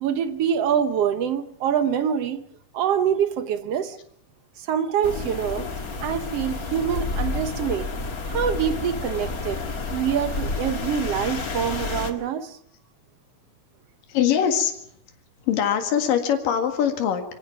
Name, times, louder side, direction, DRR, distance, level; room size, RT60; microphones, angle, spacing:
voice 1, 0.0-2.5 2.7-4.0 4.6-5.7 6.0-7.9 8.3-9.6 9.9-12.6, right 8 dB, 65° right, 1.6 m, -25 dB
sound 1, 5.0-12.1, left 3 dB, 35° left, 1.6 m, -30 dB
voice 2, 14.1-14.8 15.4-17.2, left 9 dB, 85° left, 3.5 m, -22 dB
26.0 x 17.0 x 5.9 m
omnidirectional pair, 3.8 m